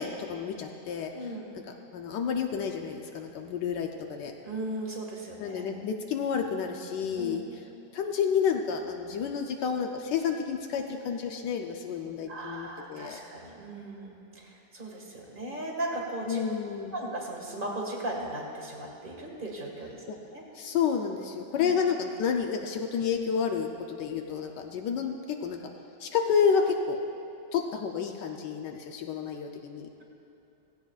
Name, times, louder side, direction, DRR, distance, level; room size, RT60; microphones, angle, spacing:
voice 1, 0.0-1.1 1.5-4.3 5.4-7.4 7.9-13.2 16.3-16.9 20.1-20.2 20.5-25.6 26.0-27.0 27.5-29.9, left 6 dB, 80° left, 3 dB, 1.3 m, -30 dB
voice 2, 1.1-1.5 4.4-5.6 7.1-7.4 12.3-16.4 16.9-20.0 20.3-20.4 21.5-21.7, right 1 dB, 30° right, -1 dB, 1.9 m, -37 dB
18.0 x 16.0 x 2.4 m, 2.7 s
omnidirectional pair, 1.9 m